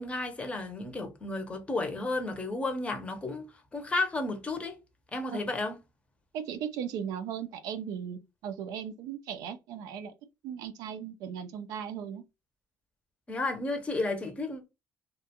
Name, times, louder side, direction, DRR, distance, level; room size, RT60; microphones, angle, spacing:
voice 1, 0.0-3.5 3.7-4.8 5.1-5.8 13.3-14.6, left 2 dB, 20° left, 0.6 m, -32 dB
voice 2, 6.3-10.1 10.4-12.2, right 8 dB, 85° right, 0.4 m, -37 dB
2.3 x 2.1 x 2.8 m
cardioid pair, 130°, 6 cm